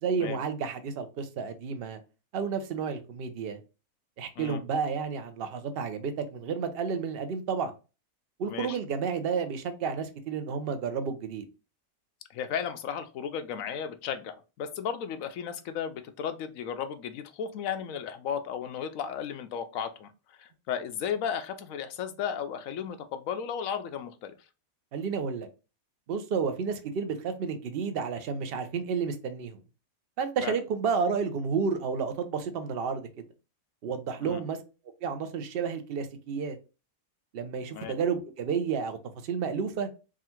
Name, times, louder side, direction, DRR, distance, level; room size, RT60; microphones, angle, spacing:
voice 1, 0.0-2.0 2.3-3.6 4.2-7.7 8.4-11.4 24.9-25.5 26.1-29.6 30.2-33.1 33.8-34.6 35.0-36.6 37.3-39.0 39.3-39.9, right 5 dB, 55° right, 0.7 m, -31 dB
voice 2, 12.3-24.3 30.4-30.6 34.2-34.4 37.7-38.0, left 8 dB, 70° left, 1.0 m, -35 dB
3.7 x 2.4 x 4.3 m
omnidirectional pair, 1.6 m